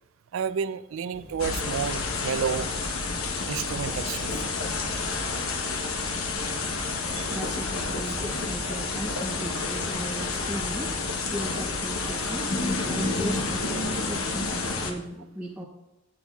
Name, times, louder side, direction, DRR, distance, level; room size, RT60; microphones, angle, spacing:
voice 1, 0.3-2.7 3.4-4.3 7.1-7.4, right 7 dB, 70° right, 14 dB, 0.3 m, -30 dB
sound 1, 1.1-12.2, right 1 dB, 45° right, 1.4 m, -46 dB
sound 2, 1.4-14.9, left 3 dB, 80° left, 0.9 m, -29 dB
voice 2, 7.3-11.0 11.3-15.7, equal, 10° right, -2 dB, 0.6 m, -37 dB
12.5 x 8.6 x 2.3 m, 0.98 s
head